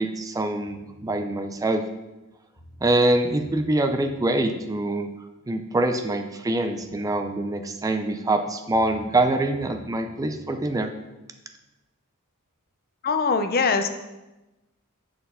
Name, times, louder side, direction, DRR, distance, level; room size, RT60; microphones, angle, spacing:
voice 1, 0.0-1.8 2.8-5.1 5.5-10.9, right 2 dB, 15° right, 6 dB, 0.4 m, -24 dB
sound 1, 0.7-1.2 2.2-2.3 2.6-4.2 6.5-6.6 6.8-7.5 8.7-10.5, equal, 25° left, 1.7 m, -49 dB
voice 2, 13.0-13.9, left 4 dB, 45° left, 8 dB, 0.5 m, -22 dB
7.8 x 4.2 x 5.5 m, 1.0 s
head